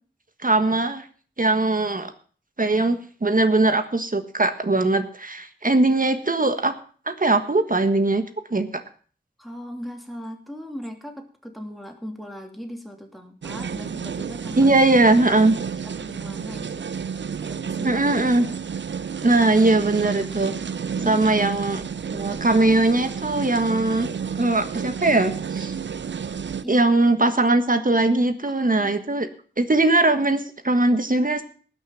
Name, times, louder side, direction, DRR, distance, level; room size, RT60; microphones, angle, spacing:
voice 1, 0.4-1.0 1.4-2.1 2.6-6.7 7.1-8.2 8.5-8.7 14.6-15.5 17.8-18.5 19.2-20.5 21.0-21.8 22.1-24.1 24.4-25.7 26.7-29.3 29.6-31.4, right 2 dB, 50° right, 9 dB, 1.5 m, -20 dB
voice 2, 9.4-14.7 15.1-15.4 15.7-16.9 17.4-18.0 21.0-21.2 26.6-27.1 28.4-29.0, equal, ahead, 3 dB, 2.8 m, -39 dB
sound 1, 13.4-26.6, right 6 dB, 85° right, 0.5 m, -31 dB
19.0 x 6.5 x 5.8 m, 0.43 s
wide cardioid pair, 55°, 18 cm